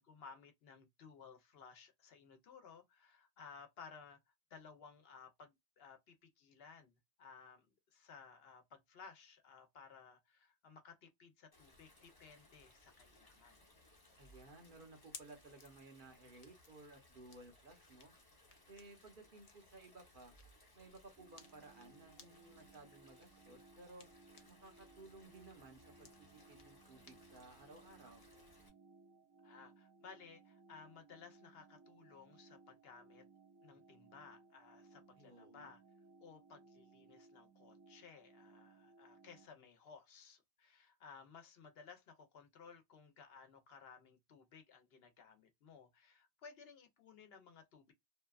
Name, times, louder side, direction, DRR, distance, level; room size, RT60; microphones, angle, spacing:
voice 1, 0.0-13.6 29.4-33.3 33.6-35.8 36.2-47.9, left 5 dB, 70° left, 0.9 m, -58 dB
Stream, 11.5-28.7, left 1 dB, 25° left, 0.9 m, -66 dB
sound 1, 14.0-24.8 25.1-28.3, left 5 dB, 45° left, 0.5 m, -63 dB
voice 2, 14.2-18.1 18.7-20.3 20.7-24.1 24.5-28.2 35.1-35.7, right 2 dB, 55° right, 1.0 m, -58 dB
sound 2, 21.2-39.5, right 3 dB, 20° right, 0.6 m, -64 dB
2.8 x 2.2 x 2.3 m
omnidirectional pair, 1.1 m